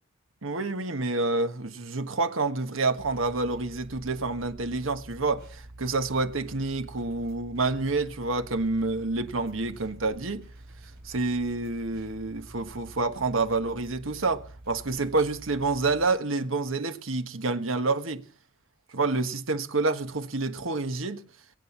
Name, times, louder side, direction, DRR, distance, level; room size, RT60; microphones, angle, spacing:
voice 1, 0.4-10.4 11.0-18.2 18.9-21.2, right 3 dB, 90° right, 1.5 m, -28 dB
sound 1, 3.0-16.1, right 1 dB, 50° right, 4.5 m, -47 dB
22.0 x 8.5 x 7.3 m
head